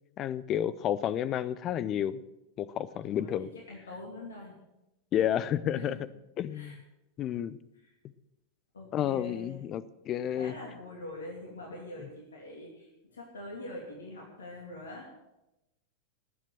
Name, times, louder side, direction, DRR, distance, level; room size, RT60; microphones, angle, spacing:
voice 1, 0.2-2.2 2.6-3.5 5.1-6.0 6.4-6.8 7.2-7.6 8.9-10.5, left 10 dB, 30° left, 17 dB, 0.7 m, -31 dB
voice 2, 3.1-4.6 5.7-6.0 6.5-6.8 7.8-7.9 8.7-9.7 10.3-15.1, left 2 dB, 70° left, 0 dB, 2.7 m, -44 dB
19.5 x 7.5 x 6.7 m, 0.94 s
figure-of-eight pair, 90°, 0 cm